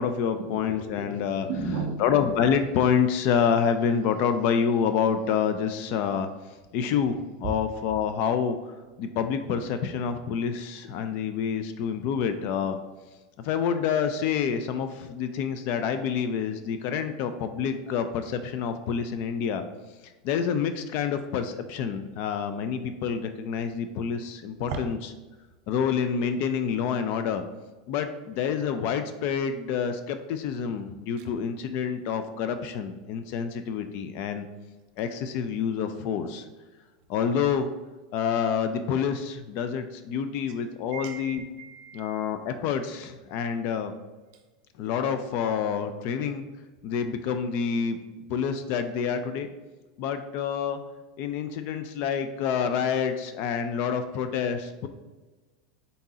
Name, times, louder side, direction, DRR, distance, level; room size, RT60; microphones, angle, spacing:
voice 1, 0.0-1.5 2.0-6.3 6.7-8.6 9.0-12.8 13.4-19.6 20.2-25.0 25.7-27.4 27.9-34.5 35.0-36.4 37.1-37.7 38.1-41.4 41.9-43.9 44.8-46.4 46.8-48.0 48.3-49.5 50.0-50.8 51.2-54.9, left 7 dB, 50° left, 9 dB, 0.4 m, -27 dB
voice 2, 1.5-2.0 7.4-7.5 24.7-24.8 31.2-31.3 40.9-42.2, right 5 dB, 55° right, 5 dB, 0.5 m, -33 dB
4.0 x 3.7 x 2.7 m, 1.2 s
supercardioid pair, 125°, 4 cm